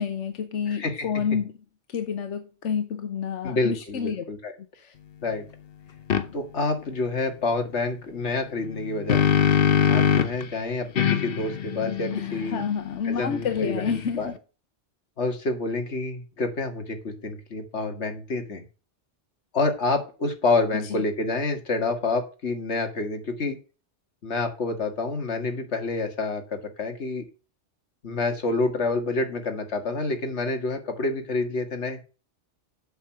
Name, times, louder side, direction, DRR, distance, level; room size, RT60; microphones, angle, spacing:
voice 1, 0.0-1.5 1.9-4.2 4.7-4.9 12.1-14.3 20.7-21.0, left 7 dB, 90° left, 1.2 m, -29 dB
voice 2, 0.7-1.1 3.4-4.5 5.2-5.5 6.3-9.2 9.9-12.6 13.1-13.9 14.2-14.3 15.2-18.6 19.5-23.6 24.2-27.2 28.0-32.0, left 3 dB, 70° left, 2.0 m, -28 dB
sound 1, 6.1-6.3 8.7-10.4 11.0-14.3, left 8 dB, 55° left, 1.0 m, -23 dB
7.9 x 6.4 x 5.6 m
omnidirectional pair, 1.2 m